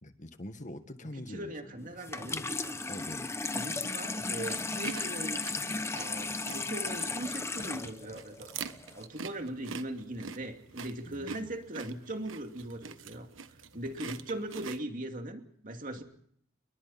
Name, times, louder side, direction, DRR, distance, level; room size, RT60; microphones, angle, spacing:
voice 1, 0.0-1.5 1.9-2.5 2.9-3.3 11.1-11.5, left 1 dB, 40° left, 8 dB, 1.8 m, -44 dB
voice 2, 1.3-2.8 3.5-8.5 8.9-13.3 13.7-16.0, right 1 dB, 45° right, 4 dB, 2.6 m, -40 dB
Water tap faucet / Sink (filling or washing), 2.0-9.0, left 3 dB, 15° left, 0.9 m, -35 dB
sound 1, 3.9-14.8, right 5 dB, 80° right, 1.3 m, -45 dB
29.5 x 22.0 x 4.3 m, 0.65 s
head